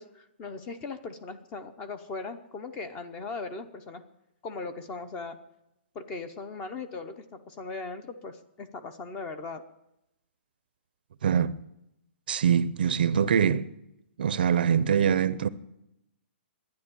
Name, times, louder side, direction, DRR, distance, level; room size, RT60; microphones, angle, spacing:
voice 1, 0.0-4.0 4.4-5.4 5.9-9.6, left 3 dB, 15° left, 0.7 m, -39 dB
voice 2, 11.2-11.6 12.3-13.7 14.2-15.5, right 8 dB, 50° right, 0.6 m, -23 dB
11.5 x 10.0 x 9.8 m
hypercardioid pair, 175°, 6 cm